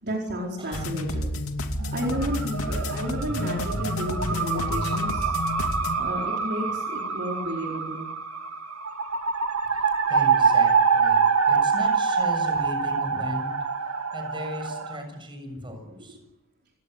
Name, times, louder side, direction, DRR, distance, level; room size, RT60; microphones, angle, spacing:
voice 1, 0.0-1.4 1.9-5.3 6.0-8.1 15.6-15.7, equal, 50° right, -1 dB, 4.6 m, -32 dB
voice 2, 0.6-1.2 9.7-13.6 14.1-16.2, equal, 25° right, 5 dB, 7.2 m, -37 dB
sound 1, 0.7-6.0, left 1 dB, 75° left, 2.6 m, -30 dB
sound 2, 1.8-15.0, right 5 dB, 85° right, 2.3 m, -25 dB
29.5 x 18.0 x 8.2 m, 0.98 s
head